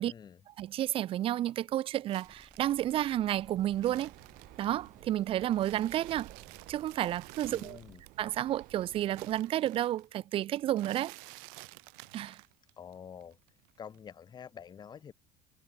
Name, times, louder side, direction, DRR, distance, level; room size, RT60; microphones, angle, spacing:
voice 1, 0.0-0.4 7.4-8.0 12.8-13.4 13.8-15.1, left 7 dB, 30° left, 1.7 m, -47 dB
voice 2, 0.6-4.1 4.6-6.3 6.7-7.8 8.2-11.1 12.1-12.4, right 13 dB, 40° right, 0.4 m, -31 dB
sound 1, 2.1-5.1 5.4-8.3 8.6-12.9 13.2-14.1, right 35 dB, 85° right, 1.2 m, -52 dB
sound 2, 2.2-8.0, equal, ahead, 2.8 m, -61 dB
Breathing, 3.3-9.4, right 20 dB, 70° right, 1.5 m, -55 dB
cardioid pair, 140°, 14 cm